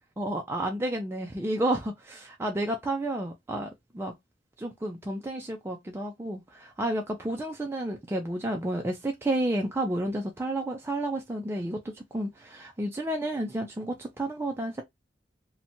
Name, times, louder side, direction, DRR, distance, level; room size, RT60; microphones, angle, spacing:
voice 1, 0.2-3.7 3.9-4.1 4.6-14.8, right 1 dB, 15° right, 0.3 m, -31 dB
2.7 x 2.1 x 2.6 m
head